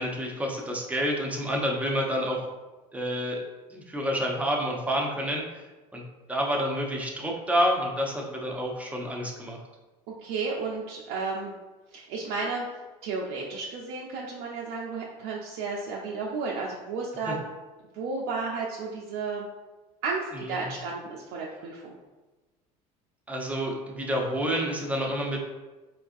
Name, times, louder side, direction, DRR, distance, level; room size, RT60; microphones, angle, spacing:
voice 1, 0.0-2.5 2.9-3.4 3.7-5.4 5.9-6.0 6.3-9.6 17.3-17.4 20.3-20.7 23.3-25.4, equal, 10° right, -1 dB, 0.6 m, -28 dB
voice 2, 10.1-11.5 11.9-12.7 13.0-17.4 17.9-19.5 20.0-21.9, right 4 dB, 65° right, -3 dB, 0.5 m, -33 dB
4.3 x 2.3 x 2.5 m, 1.2 s
supercardioid pair, 90°, 18 cm